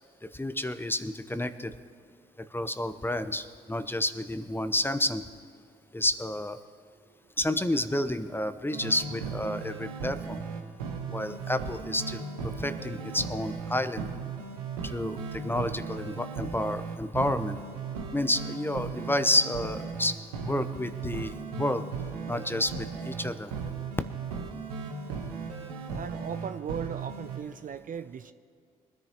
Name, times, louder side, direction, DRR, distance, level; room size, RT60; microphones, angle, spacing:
voice 1, 0.2-1.7 2.5-5.2 5.9-6.6 7.4-10.4 11.1-14.1 14.8-17.6 18.1-20.2 20.4-21.9 22.3-23.5, left 1 dB, 10° left, 11 dB, 0.9 m, -30 dB
sound 1, 8.7-27.4, right 5 dB, 90° right, 1.0 m, -37 dB
voice 2, 25.9-28.3, right 7 dB, 45° right, 11 dB, 0.5 m, -38 dB
22.5 x 10.5 x 3.0 m, 2.2 s
hypercardioid pair, 40°, 19 cm